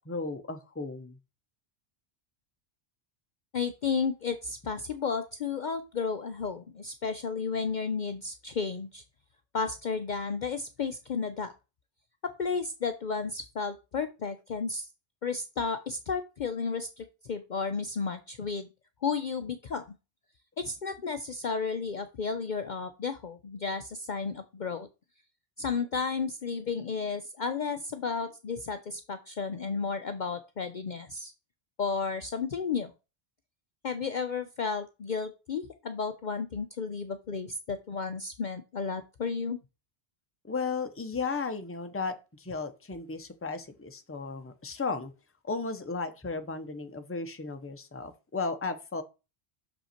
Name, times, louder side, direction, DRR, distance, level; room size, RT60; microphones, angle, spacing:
voice 1, 0.1-1.2 40.4-45.1 45.4-49.0, left 4 dB, 15° left, 7 dB, 0.7 m, -35 dB
voice 2, 3.5-9.0 9.5-11.5 12.2-14.9 15.2-18.7 19.0-19.8 20.6-24.9 25.6-31.3 31.8-32.9 33.8-39.6, left 5 dB, 50° left, 9 dB, 0.7 m, -33 dB
6.4 x 5.5 x 4.3 m, 0.29 s
omnidirectional pair, 1.1 m